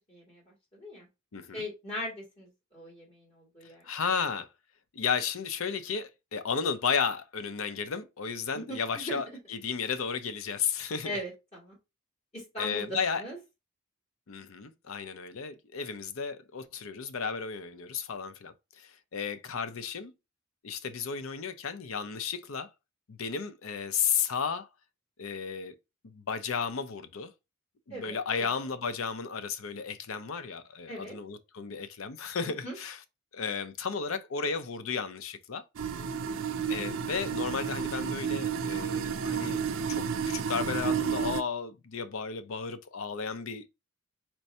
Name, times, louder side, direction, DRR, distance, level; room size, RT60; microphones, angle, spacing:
voice 1, 0.1-1.1 1.5-3.8 8.5-9.2 11.0-11.8 12.3-12.9 13.2-13.4 27.9-28.5 30.9-31.2 32.6-32.8 36.0-36.3, left 1 dB, 30° left, 2.2 m, -40 dB
voice 2, 1.3-1.6 3.8-4.5 4.9-11.2 12.6-13.2 14.3-20.1 20.6-22.7 23.1-24.7 25.2-25.7 26.0-27.3 27.9-33.0 33.3-35.6 36.7-43.7, left 6 dB, 85° left, 0.6 m, -33 dB
sound 1, 35.8-41.4, right 7 dB, 80° right, 0.4 m, -31 dB
4.5 x 2.6 x 4.2 m
head